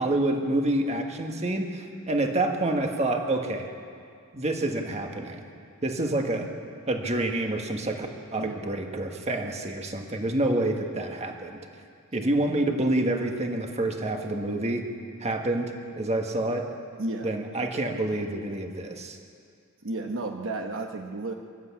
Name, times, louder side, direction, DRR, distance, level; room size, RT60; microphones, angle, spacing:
voice 1, 0.0-3.7 4.3-5.4 5.8-6.5 6.9-11.6 12.1-14.9 15.2-16.7 17.2-19.2, right 1 dB, 30° right, 3 dB, 1.7 m, -28 dB
voice 2, 17.0-17.3 19.8-21.3, right 2 dB, 65° right, 3 dB, 1.1 m, -33 dB
24.5 x 12.5 x 8.5 m, 2.3 s
head